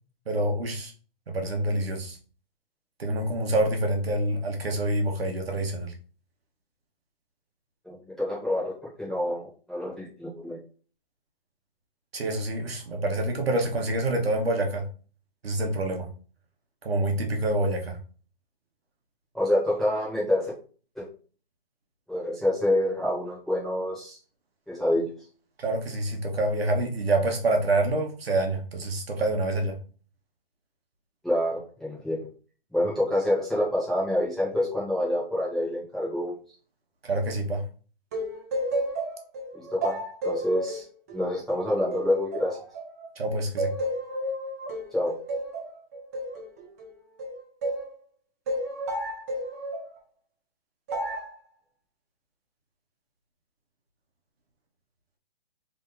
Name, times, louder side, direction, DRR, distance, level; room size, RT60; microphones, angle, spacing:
voice 1, 0.3-0.9 1.3-2.2 3.0-5.9 12.1-14.9 15.4-16.1 16.8-18.0 25.6-29.8 37.0-37.7 43.2-43.7, right 1 dB, 85° right, 1.2 m, -27 dB
voice 2, 7.8-10.6 19.3-20.5 20.9-21.0 22.1-24.2 24.7-25.1 31.2-32.3 32.7-36.3 39.5-40.8 41.1-42.6 44.9-45.2, left 1 dB, ahead, 1.0 m, -27 dB
sound 1, 38.1-43.1 43.6-47.9 48.5-49.9 50.9-51.3, right 1 dB, 15° right, 0.4 m, -32 dB
3.5 x 2.6 x 3.8 m
hypercardioid pair, 150°, 30 cm